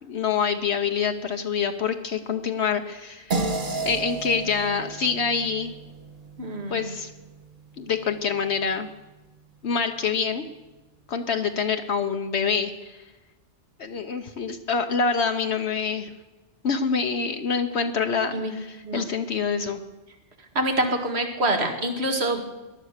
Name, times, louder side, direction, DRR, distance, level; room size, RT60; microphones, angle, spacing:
voice 1, 0.0-3.3 3.8-5.7 6.7-7.1 7.8-8.9 9.6-10.4 11.1-13.0 13.8-16.1 16.6-19.8, left 5 dB, 65° left, 6 dB, 1.1 m, -26 dB
sound 1, 3.3-8.0, right 3 dB, 45° right, 1.5 m, -33 dB
voice 2, 6.4-6.9 18.3-18.5 18.8-19.0 20.6-22.4, right 1 dB, 60° right, 4 dB, 2.2 m, -26 dB
18.5 x 11.5 x 6.6 m, 1.1 s
omnidirectional pair, 1.2 m